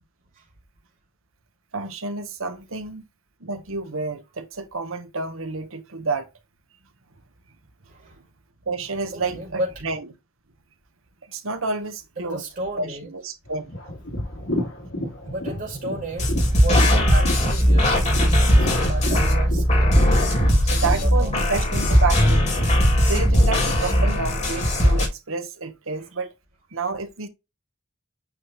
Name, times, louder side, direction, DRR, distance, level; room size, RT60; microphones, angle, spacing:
voice 1, 1.7-3.0 3.4-6.3 8.7-10.1 11.3-12.4 12.8-13.7 20.6-22.5 23.0-26.3 26.7-27.3, right 4 dB, 75° right, 1.2 m, -29 dB
voice 2, 9.1-9.7 12.2-13.1 15.2-20.0 20.3-21.7 26.0-26.1, right 1 dB, 45° right, 2.3 m, -34 dB
sound 1, 13.4-22.3, left 1 dB, 65° left, 3.5 m, -32 dB
sound 2, 16.2-25.1, equal, 35° left, 3.2 m, -19 dB
8.6 x 3.7 x 3.1 m
head